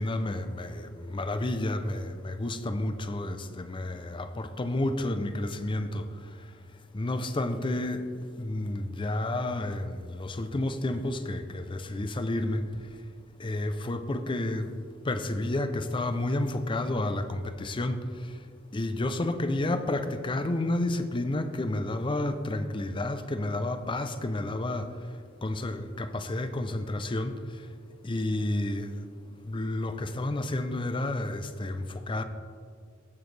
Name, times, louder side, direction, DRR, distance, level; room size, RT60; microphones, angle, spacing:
voice 1, 0.0-6.5 6.9-12.9 13.4-14.7 15.0-18.4 18.7-24.9 25.4-27.7 28.0-29.1 29.4-32.2, left 1 dB, 25° left, 0.5 m, -31 dB
16.0 x 6.2 x 3.3 m
head